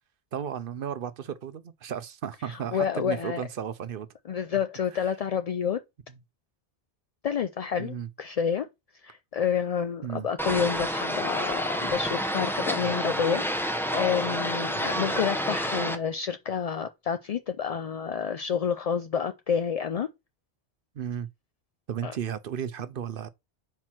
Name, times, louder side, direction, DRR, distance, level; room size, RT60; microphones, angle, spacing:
voice 1, 0.3-4.1 4.9-5.1 6.1-6.2 7.8-8.1 10.0-10.3 14.8-15.3 20.9-21.3 21.9-23.3, right 8 dB, 60° right, 0.7 m, -34 dB
voice 2, 2.5-3.4 4.3-5.8 7.2-8.7 9.0-20.1 22.0-22.1, left 7 dB, 60° left, 0.4 m, -29 dB
sound 1, 10.4-16.0, equal, ahead, 0.7 m, -29 dB
4.5 x 4.5 x 5.8 m
omnidirectional pair, 1.1 m